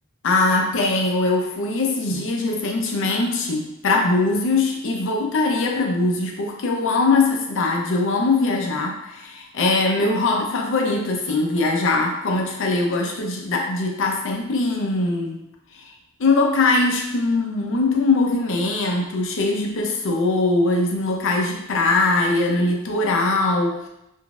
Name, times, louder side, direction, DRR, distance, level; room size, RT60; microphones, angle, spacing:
voice 1, 0.2-15.4 15.7-15.9 16.2-23.9, left 3 dB, 65° left, 1 dB, 0.6 m, -21 dB
3.8 x 2.6 x 2.3 m, 0.88 s
head